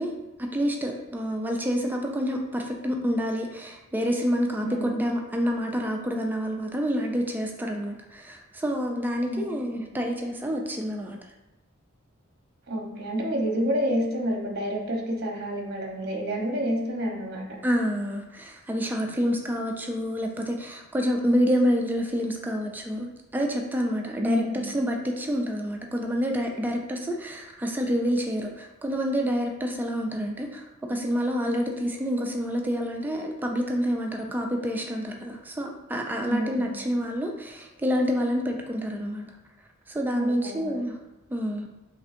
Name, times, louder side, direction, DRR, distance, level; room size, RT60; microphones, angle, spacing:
voice 1, 0.0-11.2 17.6-39.2 39.9-41.0 41.3-41.7, equal, 10° right, 2 dB, 0.3 m, -28 dB
voice 2, 4.6-5.0 9.2-9.5 9.7-9.9 12.7-17.6 24.2-24.7 36.2-36.7 40.1-40.7, equal, 50° right, 0 dB, 1.0 m, -29 dB
5.2 x 3.5 x 2.5 m, 1.0 s
head